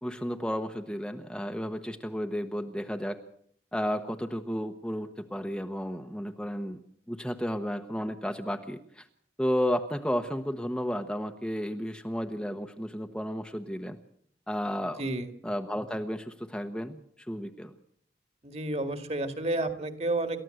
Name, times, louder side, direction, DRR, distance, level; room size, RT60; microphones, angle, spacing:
voice 1, 0.0-3.2 3.7-6.8 7.1-9.1 9.4-14.0 14.5-15.0 15.4-17.7, equal, 5° left, 5 dB, 0.9 m, -32 dB
voice 2, 15.0-15.3 18.4-20.4, right 2 dB, 35° right, 9 dB, 2.0 m, -31 dB
28.0 x 14.0 x 7.8 m, 0.67 s
head